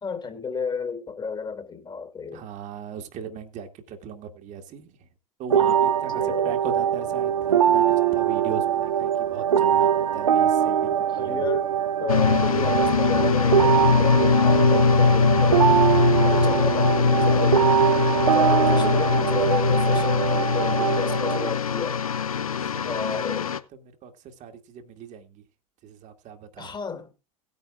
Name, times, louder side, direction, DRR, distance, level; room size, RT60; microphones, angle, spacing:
voice 1, 0.0-2.5 6.2-6.6 11.1-11.7 12.0-15.7 16.2-17.7 18.3-22.0 22.8-23.5 26.6-27.1, left 5 dB, 25° left, 2.4 m, -32 dB
voice 2, 2.3-4.9 5.4-11.5 18.4-18.9 22.6-23.6 24.0-24.1 24.4-25.4 25.8-26.7, right 7 dB, 45° right, 2.0 m, -38 dB
sound 1, 5.5-21.5, right 9 dB, 75° right, 0.7 m, -22 dB
sound 2, 12.1-23.6, left 6 dB, 80° left, 0.9 m, -22 dB
18.5 x 9.3 x 2.4 m
figure-of-eight pair, 75°, 18 cm